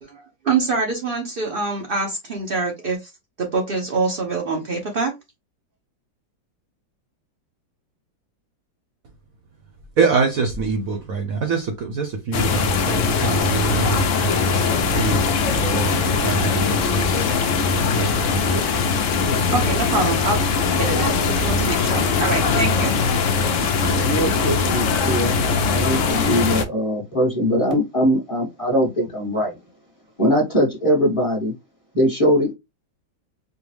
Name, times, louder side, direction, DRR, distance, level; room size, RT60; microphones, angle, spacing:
voice 1, 0.0-3.1 3.4-5.1 19.5-20.5 20.8-23.0, right 3 dB, 80° right, 0.4 m, -25 dB
voice 2, 10.0-14.6 14.9-17.3 17.9-18.7 23.5-24.4, right 4 dB, 65° right, 0.9 m, -25 dB
sound 1, 12.3-26.6, left 4 dB, 75° left, 0.7 m, -21 dB
voice 3, 24.0-29.6 30.2-31.5 31.9-32.5, equal, 20° left, 1.2 m, -21 dB
4.6 x 2.2 x 3.2 m
omnidirectional pair, 2.0 m